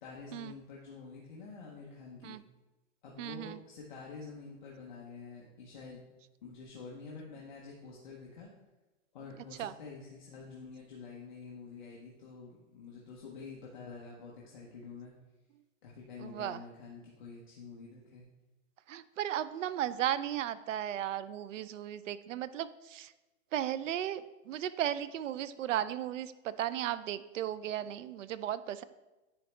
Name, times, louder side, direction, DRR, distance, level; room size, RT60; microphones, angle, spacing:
voice 1, 0.0-2.4 3.0-6.0 6.4-8.5 9.1-15.1 15.8-18.2, left 4 dB, 35° left, -4 dB, 0.9 m, -48 dB
voice 2, 3.2-3.6 9.6-9.7 16.2-16.6 18.9-23.1 23.5-28.8, right 11 dB, 70° right, 15 dB, 0.5 m, -35 dB
10.0 x 4.0 x 3.3 m, 1.1 s
hypercardioid pair, 180°, 39 cm